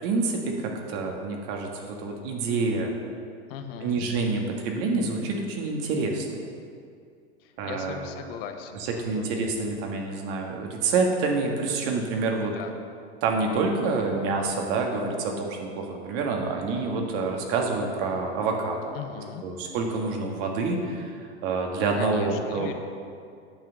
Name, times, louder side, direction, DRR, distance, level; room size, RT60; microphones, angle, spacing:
voice 1, 0.0-2.9 3.8-6.4 7.6-8.1 9.0-12.5 13.2-18.9 19.4-21.1 21.4-22.7, right 3 dB, 55° right, 1 dB, 1.8 m, -27 dB
voice 2, 3.5-4.0 7.4-9.3 12.4-12.7 18.9-19.4 21.9-22.7, left 8 dB, 60° left, 6 dB, 1.0 m, -39 dB
9.0 x 5.9 x 6.8 m, 2.3 s
hypercardioid pair, 110°, 33 cm